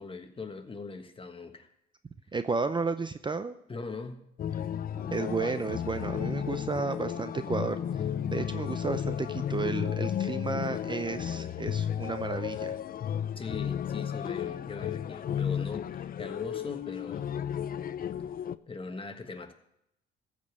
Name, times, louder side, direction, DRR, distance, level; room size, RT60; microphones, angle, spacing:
voice 1, 0.0-1.7 3.7-4.3 4.5-4.6 13.4-15.9 16.2-17.3 18.7-19.5, left 4 dB, 25° left, 7 dB, 1.5 m, -40 dB
voice 2, 2.3-3.5 5.1-7.8 8.3-12.8, right 4 dB, 25° right, 11 dB, 0.6 m, -32 dB
sound 1, 4.4-18.6, left 9 dB, 45° left, 0.5 m, -33 dB
sound 2, 4.9-11.1, left 1 dB, ahead, 1.5 m, -52 dB
14.5 x 5.3 x 8.1 m, 0.79 s
cardioid pair, 90°, 20 cm